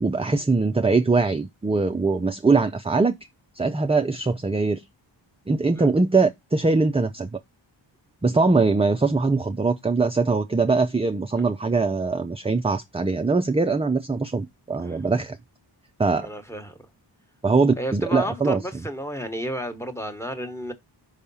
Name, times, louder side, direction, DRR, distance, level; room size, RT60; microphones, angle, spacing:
voice 1, 0.0-3.2 3.6-4.8 5.5-7.4 8.2-15.4 16.0-16.3 17.4-18.6, right 3 dB, 15° right, 0.4 m, -22 dB
voice 2, 16.2-16.8 17.8-20.7, equal, 5° left, 1.1 m, -32 dB
5.6 x 3.4 x 5.4 m
wide cardioid pair, 95°, 46 cm